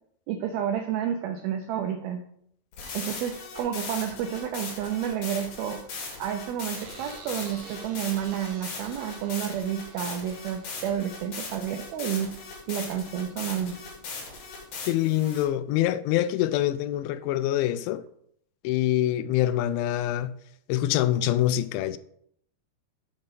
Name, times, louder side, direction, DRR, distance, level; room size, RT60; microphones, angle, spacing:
voice 1, 0.3-2.2 2.9-12.3 12.7-13.8, right 9 dB, 85° right, 2.1 m, -30 dB
sound 1, 2.7-15.4, left 4 dB, 60° left, 3.6 m, -39 dB
sound 2, 6.7-12.0, right 4 dB, 60° right, 2.5 m, -49 dB
voice 2, 14.9-18.0 18.6-20.3 20.7-22.0, left 13 dB, 90° left, 2.8 m, -25 dB
8.0 x 5.3 x 5.3 m
omnidirectional pair, 5.0 m